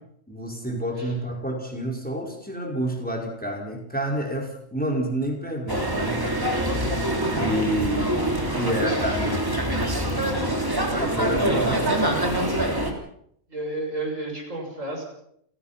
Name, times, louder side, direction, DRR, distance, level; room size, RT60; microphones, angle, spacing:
voice 1, 0.3-6.5 7.4-9.6 10.8-11.8, equal, 5° left, 1 dB, 4.7 m, -29 dB
sound 1, 5.7-12.9, right 1 dB, 15° right, 3.2 m, -25 dB
voice 2, 11.4-12.2 13.5-15.0, right 2 dB, 85° right, 1 dB, 7.0 m, -32 dB
29.5 x 17.0 x 5.8 m, 0.70 s
omnidirectional pair, 1.3 m